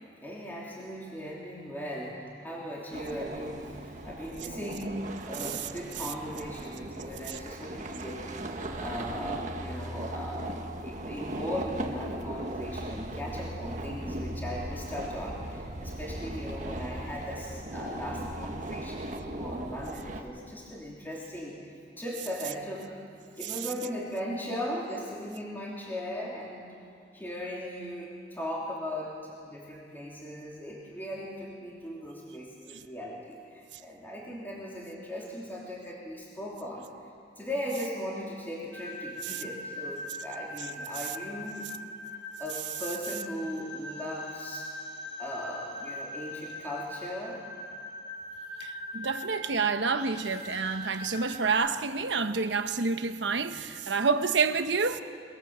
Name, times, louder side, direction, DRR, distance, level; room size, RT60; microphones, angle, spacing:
voice 1, 0.2-8.2 8.5-10.5 10.8-21.6 22.0-23.0 23.4-26.7 27.1-36.8 37.3-41.7 42.4-44.7 45.2-47.4, equal, 10° left, 3.2 m, -38 dB
sound 1, 2.9-20.2, right 1 dB, 45° right, 1.6 m, -38 dB
voice 2, 5.4-5.7 7.3-7.4 23.4-23.5 39.2-39.4 41.0-41.1 48.6-55.0, right 5 dB, 80° right, 1.1 m, -29 dB
sound 2, 38.7-51.5, left 1 dB, 80° left, 4.5 m, -41 dB
23.5 x 21.5 x 7.5 m
head